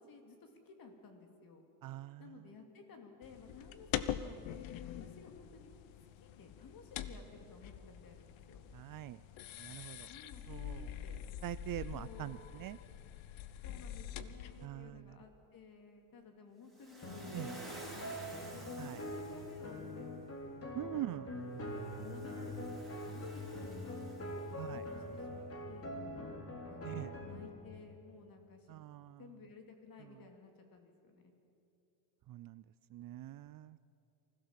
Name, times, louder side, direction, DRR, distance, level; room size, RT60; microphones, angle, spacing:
voice 1, 0.0-1.7 2.2-4.4 4.8-5.7 6.2-8.6 10.1-11.2 11.9-12.4 13.6-18.1 18.5-20.1 20.7-21.5 21.8-24.0 24.5-26.2 26.7-28.8 29.2-31.3, left 5 dB, 45° left, 4 dB, 2.9 m, -55 dB
voice 2, 1.8-2.4 8.7-9.2 9.6-10.1 10.5-10.9 11.4-12.8 14.6-15.2 17.3-17.6 18.8-19.0 20.7-21.3 24.6-24.8 26.8-27.1 28.7-29.3 32.3-32.6 32.9-33.8, right 14 dB, 45° right, 16 dB, 0.5 m, -43 dB
sound 1, 3.2-14.7, left 10 dB, 70° left, 1.0 m, -44 dB
Waves surf, 16.7-19.9 21.7-24.8, right 1 dB, ahead, 4.7 m, -54 dB
sound 2, 17.0-27.5, left 1 dB, 30° left, 3.3 m, -44 dB
24.5 x 16.0 x 7.5 m, 2.7 s
cardioid pair, 135°, 49 cm